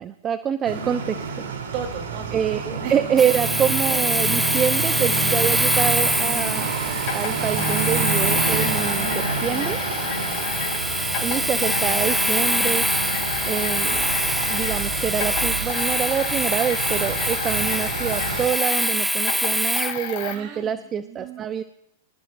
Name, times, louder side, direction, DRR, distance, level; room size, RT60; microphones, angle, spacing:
voice 1, 0.0-1.4 2.3-9.8 11.2-12.8 13.5-21.6, right 8 dB, 25° right, 11 dB, 0.8 m, -26 dB
sound 1, 0.6-18.5, right 5 dB, 75° right, 3.6 m, -28 dB
voice 2, 1.7-2.4 2.8-2.9 10.1-10.8 20.3-21.5, right 8 dB, 45° right, 4 dB, 3.8 m, -36 dB
Domestic sounds home sounds, 3.2-20.0, equal, ahead, 0.6 m, -25 dB
sound 2, 7.1-10.8 11.1-14.9 15.1-20.3, left 9 dB, 50° left, 4.9 m, -32 dB
26.0 x 14.5 x 2.7 m, 0.77 s
hypercardioid pair, 115°, 0 cm